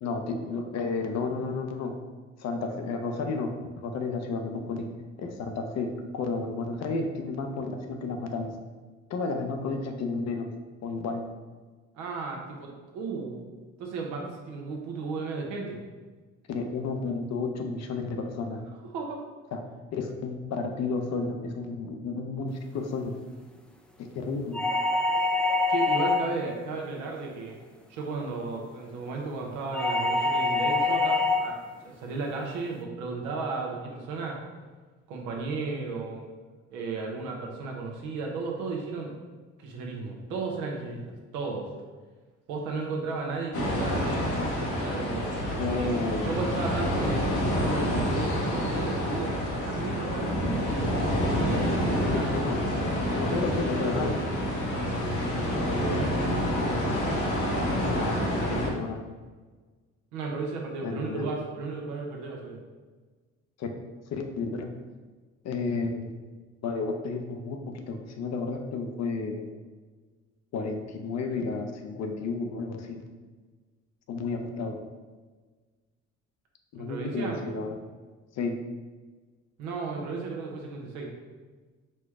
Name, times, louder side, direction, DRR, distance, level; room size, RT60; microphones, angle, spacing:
voice 1, 0.0-2.0 2.4-4.9 5.2-8.6 9.1-10.5 10.8-11.2 16.5-18.6 19.5-19.6 19.9-23.2 24.0-24.6 45.6-46.3 52.0-52.6 53.1-54.2 57.9-59.0 60.8-61.3 63.6-63.8 64.1-64.7 65.4-66.2 66.6-69.5 70.5-73.0 74.1-74.8 76.7-77.8 78.4-78.6, left 4 dB, 60° left, 4 dB, 0.7 m, -32 dB
voice 2, 11.9-13.4 13.8-15.8 18.9-19.2 25.7-27.6 27.9-31.6 31.8-34.4 35.1-36.3 36.7-39.1 39.6-41.0 41.3-41.7 42.5-44.2 44.7-45.4 45.8-45.9 46.2-51.0 51.3-52.3 53.2-54.3 55.3-56.1 60.1-62.6 76.7-77.4 79.6-81.1, right 4 dB, 85° right, 0 dB, 0.9 m, -34 dB
sound 1, 24.5-26.5 29.7-31.5, left 3 dB, 5° left, 0.4 m, -25 dB
sound 2, 43.5-58.7, equal, 75° left, 1.0 m, -28 dB
4.4 x 2.2 x 4.7 m, 1.4 s
supercardioid pair, 75°, 30 cm